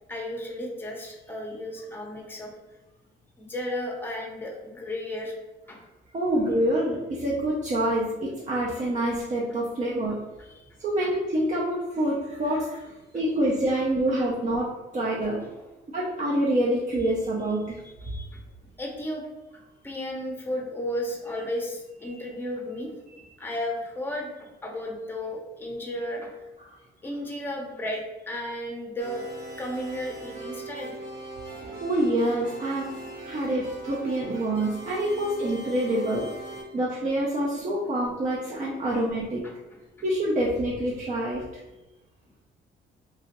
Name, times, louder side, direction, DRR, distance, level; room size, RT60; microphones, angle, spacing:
voice 1, 0.1-2.8 3.4-5.3 5.7-5.8 10.4-10.8 11.0-11.1 15.2-15.6 17.8-19.3 19.5-26.4 27.0-29.2 29.6-31.0 36.5-36.6 39.4-39.8 41.7-41.8, left 1 dB, 10° left, 0 dB, 0.7 m, -34 dB
voice 2, 6.1-10.2 10.8-12.8 13.1-15.4 15.9-17.8 31.6-36.3 36.7-39.5 40.0-41.5, right 1 dB, 40° right, -4 dB, 0.5 m, -26 dB
sound 1, 29.0-36.6, right 2 dB, 75° right, 1.2 m, -40 dB
2.8 x 2.3 x 2.9 m, 1.1 s
cardioid pair, 90°, 20 cm